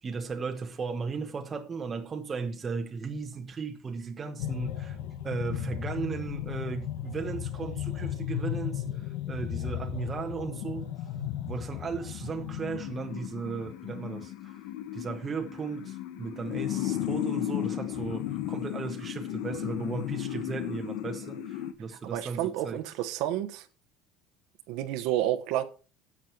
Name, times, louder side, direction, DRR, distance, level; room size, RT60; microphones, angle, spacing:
voice 1, 0.0-5.0 5.2-10.9 11.4-14.6 14.9-22.8, right 5 dB, 20° right, 1.1 m, -36 dB
sound 1, 4.4-21.7, left 12 dB, 80° left, 1.4 m, -35 dB
voice 2, 22.1-23.7 24.7-25.6, right 12 dB, 70° right, 1.1 m, -30 dB
10.5 x 7.4 x 4.6 m
cardioid pair, 150°, 0 cm